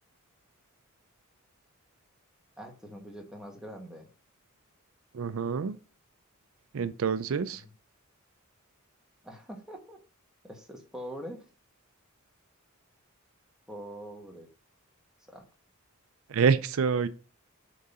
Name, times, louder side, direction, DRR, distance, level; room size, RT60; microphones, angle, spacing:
voice 1, 2.6-4.1 9.2-10.0 10.4-11.4 13.7-14.5 15.3-15.5, equal, 5° right, 1.3 m, -43 dB
voice 2, 5.1-5.8 6.7-7.7 16.3-17.1, right 6 dB, 75° right, 0.4 m, -27 dB
7.4 x 3.8 x 4.2 m
head